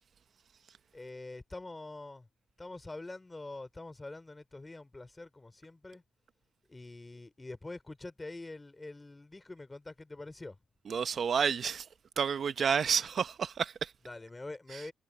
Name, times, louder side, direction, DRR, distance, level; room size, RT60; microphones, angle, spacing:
voice 1, 0.9-2.3 2.6-6.0 6.7-10.6 14.1-14.9, left 2 dB, 20° left, 3.4 m, -45 dB
voice 2, 10.9-11.8 12.2-13.9 14.7-14.8, right 7 dB, 50° right, 0.7 m, -30 dB
cardioid pair, 90°, 0 cm